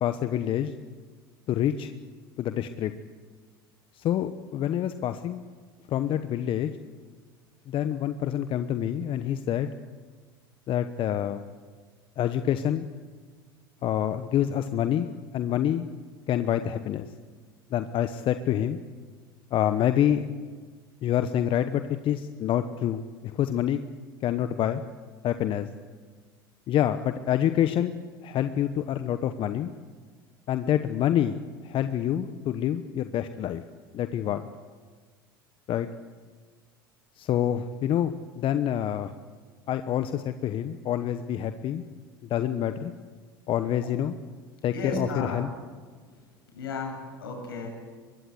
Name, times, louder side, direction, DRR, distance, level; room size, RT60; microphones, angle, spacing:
voice 1, 0.0-0.7 1.5-1.9 2.4-2.9 3.9-5.5 5.9-6.7 7.7-9.7 10.7-11.4 12.2-12.8 13.8-15.1 15.3-15.8 16.3-17.1 17.7-18.8 19.5-20.2 21.0-23.8 24.2-24.8 25.2-25.7 26.7-28.0 28.2-29.7 30.5-31.4 31.6-33.6 33.9-34.5 35.7-35.9 37.2-39.1 39.7-41.8 42.3-42.9 43.5-44.1 44.6-45.5, left 10 dB, 45° left, 10 dB, 1.1 m, -27 dB
voice 2, 44.7-45.4 46.0-47.7, left 3 dB, 80° left, 2 dB, 7.5 m, -34 dB
23.5 x 21.5 x 8.0 m, 1.5 s
hypercardioid pair, 75°, 12 cm